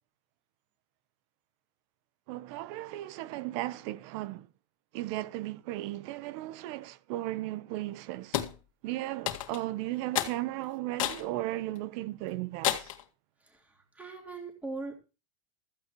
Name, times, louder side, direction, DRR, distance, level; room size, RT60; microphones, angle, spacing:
voice 1, 2.3-4.5 4.9-8.4 8.8-12.9, right 16 dB, 60° right, 0.9 m, -36 dB
sound 1, 8.3-8.5 9.3-9.7 10.1-10.4 11.0-11.3 11.8-11.9 12.6-13.0, left 13 dB, 85° left, 2.0 m, -30 dB
voice 2, 14.0-15.0, right 3 dB, 10° right, 3.6 m, -39 dB
15.5 x 14.5 x 3.1 m
supercardioid pair, 130°, 17 cm